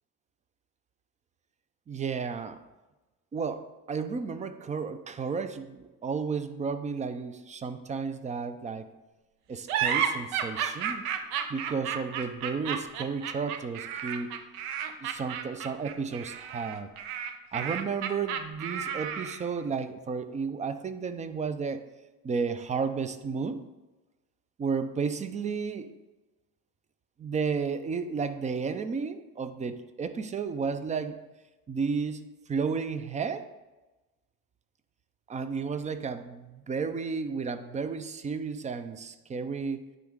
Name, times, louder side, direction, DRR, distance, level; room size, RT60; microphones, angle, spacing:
voice 1, 1.9-2.6 3.3-8.9 9.5-11.0 11.5-14.3 15.0-16.9 17.5-21.8 22.2-23.6 24.6-25.9 27.2-31.2 31.7-32.2 32.5-33.5 35.3-39.8, right 5 dB, 20° right, 11 dB, 0.3 m, -32 dB
sound 1, 9.7-19.5, right 8 dB, 70° right, 0.7 m, -32 dB
9.4 x 3.7 x 3.6 m, 1.1 s
hypercardioid pair, 65°, 46 cm